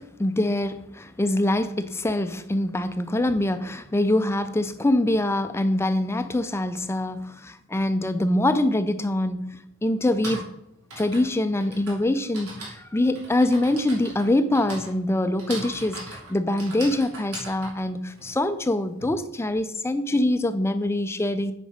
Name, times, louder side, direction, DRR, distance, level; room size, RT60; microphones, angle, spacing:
voice 1, 0.0-10.5 11.0-21.5, left 1 dB, 10° left, 0.3 m, -24 dB
Typing, 8.9-9.0 9.9-19.0, right 2 dB, 90° right, 3.3 m, -40 dB
8.5 x 5.1 x 5.2 m
head